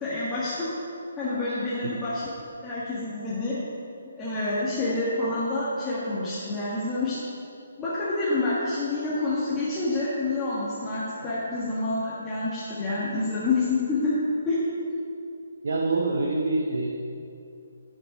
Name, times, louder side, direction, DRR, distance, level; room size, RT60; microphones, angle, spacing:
voice 1, 0.0-0.7 1.2-2.2 2.6-3.5 4.2-7.2 7.8-14.2 14.4-14.9, left 2 dB, 10° left, -10 dB, 1.6 m, -28 dB
voice 2, 15.6-16.9, right 2 dB, 55° right, -2 dB, 1.0 m, -25 dB
9.9 x 6.1 x 5.3 m, 2.5 s
figure-of-eight pair, 140°, 0 cm